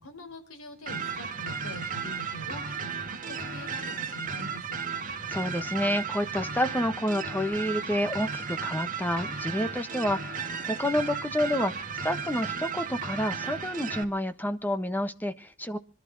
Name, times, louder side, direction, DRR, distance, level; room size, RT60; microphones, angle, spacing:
voice 1, 0.0-4.8, equal, 75° left, 7 dB, 4.2 m, -44 dB
sound 1, 0.9-14.0, right 5 dB, 40° right, 1.9 m, -34 dB
voice 2, 5.3-15.8, left 1 dB, 10° left, 9 dB, 1.2 m, -29 dB
26.0 x 12.0 x 4.1 m, 0.39 s
head